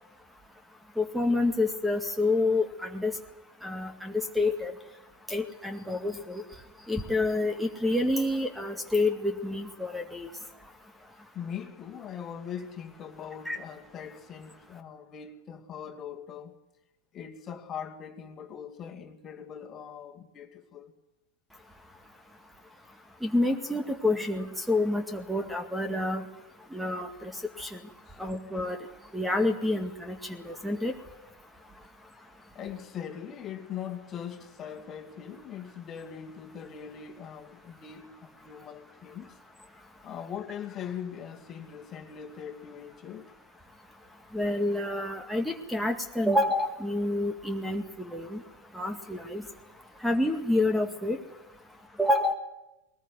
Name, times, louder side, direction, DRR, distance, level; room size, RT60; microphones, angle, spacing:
voice 1, 1.0-3.1 3.6-4.7 5.3-6.4 6.9-10.3 13.5-13.6 23.2-26.2 26.7-27.3 27.6-27.7 28.2-28.8 29.1-30.2 30.5-30.9 44.3-47.8 48.1-48.4 48.8-49.4 50.0-51.2 52.0-52.3, left 2 dB, ahead, 2.0 m, -28 dB
voice 2, 11.3-16.5 17.1-20.9 28.1-28.2 32.5-39.4 40.0-43.3, left 8 dB, 30° left, 2.3 m, -41 dB
21.5 x 20.0 x 9.5 m
figure-of-eight pair, 90°, 0 cm